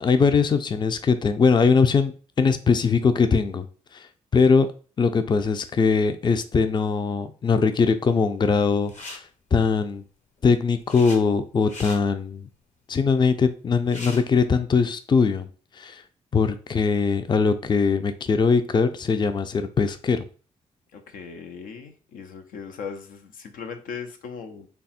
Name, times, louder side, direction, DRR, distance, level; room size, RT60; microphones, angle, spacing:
voice 1, 0.0-3.7 3.9-4.1 4.3-4.7 5.0-9.2 9.5-10.0 10.4-12.5 12.9-15.5 15.8-16.0 16.3-20.2, left 5 dB, 35° left, 10 dB, 0.4 m, -21 dB
sound 1, 8.8-9.2 10.4-11.2 11.6-12.0 13.5-13.6 13.8-14.2, left 2 dB, 55° left, 1.0 m, -39 dB
voice 2, 20.9-24.7, left 6 dB, 85° left, 5 dB, 0.5 m, -38 dB
3.4 x 2.1 x 4.1 m, 0.38 s
cardioid pair, 60°, 14 cm